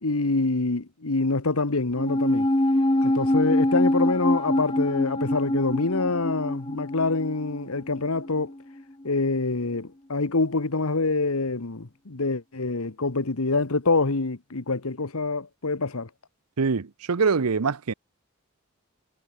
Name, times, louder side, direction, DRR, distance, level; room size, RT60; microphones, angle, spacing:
voice 1, 0.0-2.5 3.0-8.5 9.0-16.1, left 3 dB, 75° left, 1.3 m, -26 dB
sound 1, 2.0-8.5 8.8-8.9, left 1 dB, 20° left, 1.0 m, -25 dB
voice 2, 16.6-17.9, right 5 dB, 85° right, 0.7 m, -24 dB
head